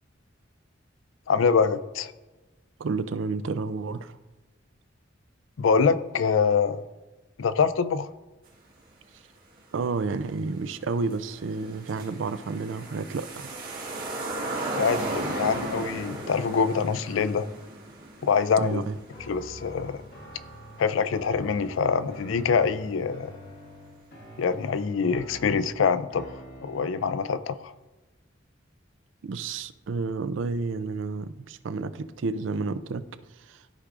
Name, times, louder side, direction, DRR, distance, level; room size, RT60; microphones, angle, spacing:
voice 1, 1.3-2.1 5.6-6.8 7.4-8.1 14.8-17.5 18.2-18.8 19.3-20.0 20.8-23.3 24.4-26.3 26.6-27.7, left 5 dB, 80° left, 14 dB, 0.4 m, -24 dB
voice 2, 2.8-4.2 9.7-13.5 18.6-19.0 29.2-33.1 33.4-33.6, right 4 dB, 70° right, 13 dB, 0.4 m, -30 dB
sound 1, 10.2-10.3 10.7-20.4 20.7-20.8, right 2 dB, 50° right, 1.6 m, -35 dB
sound 2, 19.1-27.2, equal, 60° left, 1.8 m, -46 dB
13.0 x 4.8 x 2.5 m, 1.2 s
head